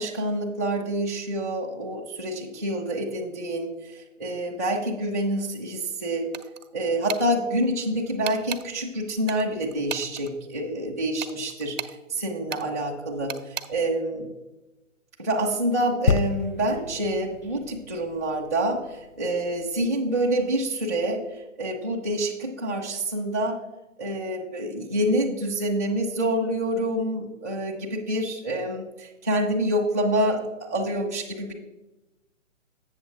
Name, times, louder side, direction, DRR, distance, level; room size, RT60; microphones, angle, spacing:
voice 1, 0.0-6.3 6.7-11.8 12.1-14.3 15.2-23.6 24.0-31.5, right 1 dB, 15° right, -5 dB, 0.4 m, -27 dB
sound 1, 6.3-6.7 7.1-7.3 8.2-8.6 9.3-10.3 11.2-12.0 12.5-12.7 13.3-13.7, right 8 dB, 70° right, 0.7 m, -34 dB
sound 2, 16.1-19.7 20.3-20.4, left 5 dB, 90° left, 0.6 m, -29 dB
7.9 x 6.8 x 3.7 m, 1.0 s
figure-of-eight pair, 135°, 40 cm